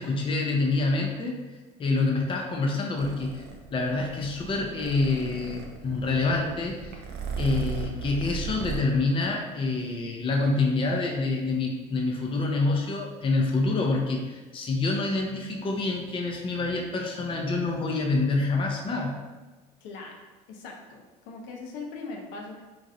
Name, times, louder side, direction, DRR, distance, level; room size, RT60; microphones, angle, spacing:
voice 1, 0.0-1.4 1.8-3.4 3.7-7.0 7.4-19.2, left 3 dB, 25° left, 1 dB, 0.5 m, -27 dB
Purr, 3.0-8.8, right 6 dB, 55° right, 0.5 m, -37 dB
voice 2, 19.8-20.2 20.5-22.6, left 3 dB, 70° left, 0 dB, 0.6 m, -40 dB
3.0 x 2.6 x 2.5 m, 1.2 s
hypercardioid pair, 75°, 20 cm